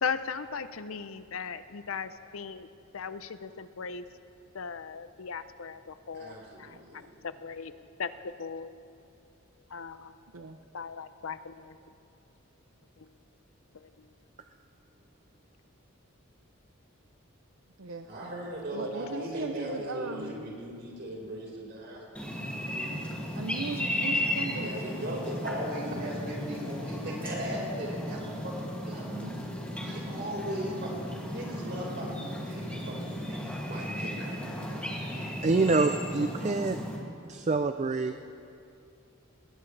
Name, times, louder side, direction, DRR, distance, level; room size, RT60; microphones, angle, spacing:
voice 1, 0.0-2.7 2.9-4.0 4.5-7.7 8.0-8.1 8.4-8.7 9.7-10.1 10.7-11.8 13.0-13.1 13.7-13.8, left 6 dB, 75° left, 12 dB, 0.6 m, -37 dB
voice 2, 6.1-7.3 18.1-22.9 24.6-29.0 29.8-30.9 31.2-34.3, equal, 50° right, -3 dB, 4.6 m, -38 dB
voice 3, 17.8-18.3 18.7-20.3 23.4-24.7 29.1-29.4, right 4 dB, 75° right, 6 dB, 0.7 m, -38 dB
sound 1, 22.1-37.0, equal, 5° left, 2.4 m, -35 dB
voice 4, 35.4-36.8 37.3-38.3, right 3 dB, 35° right, 8 dB, 0.4 m, -26 dB
20.5 x 19.5 x 3.3 m, 2.5 s
head